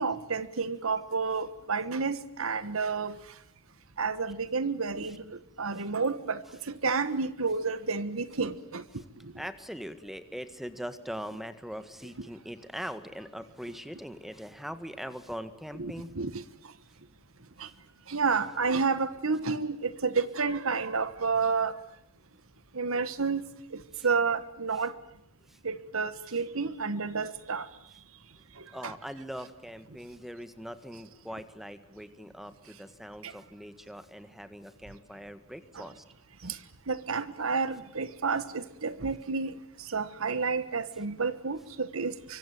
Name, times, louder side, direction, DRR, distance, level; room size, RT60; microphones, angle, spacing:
voice 1, 0.0-3.2 4.0-9.3 15.8-16.4 17.6-17.7 18.1-21.8 22.7-23.4 23.7-25.0 25.6-27.7 28.6-28.9 33.2-33.3 35.7-35.8 36.4-36.6 36.9-42.4, right 4 dB, 70° right, 14 dB, 1.3 m, -30 dB
voice 2, 9.4-16.2 17.6-17.7 23.9-24.1 24.8-24.9 25.5-25.6 26.3-26.4 28.7-36.0 36.4-36.6, equal, ahead, 11 dB, 1.8 m, -41 dB
25.0 x 25.0 x 9.4 m, 0.72 s
head